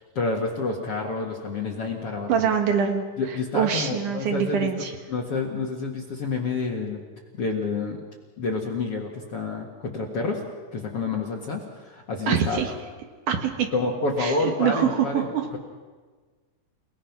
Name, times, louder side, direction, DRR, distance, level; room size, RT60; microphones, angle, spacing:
voice 1, 0.1-2.5 3.2-7.0 7.3-8.0 8.4-10.4 10.7-12.6 13.7-15.6, left 3 dB, 65° left, 0 dB, 1.5 m, -29 dB
voice 2, 2.3-3.0 3.5-4.9 12.3-12.7 13.3-13.7 14.2-15.5, right 7 dB, 60° right, 4 dB, 2.2 m, -24 dB
29.5 x 18.5 x 6.0 m, 1.4 s
omnidirectional pair, 5.6 m